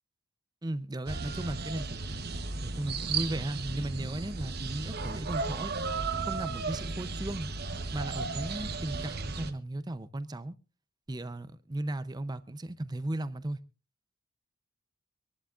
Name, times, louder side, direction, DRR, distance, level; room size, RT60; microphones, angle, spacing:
voice 1, 0.6-2.2 2.6-5.7 6.2-7.5 7.9-10.6 11.1-13.6, right 1 dB, 20° right, 14 dB, 0.6 m, -36 dB
sound 1, 1.1-9.5, right 4 dB, 45° right, 1.0 m, -35 dB
25.0 x 11.5 x 2.4 m, 0.30 s
head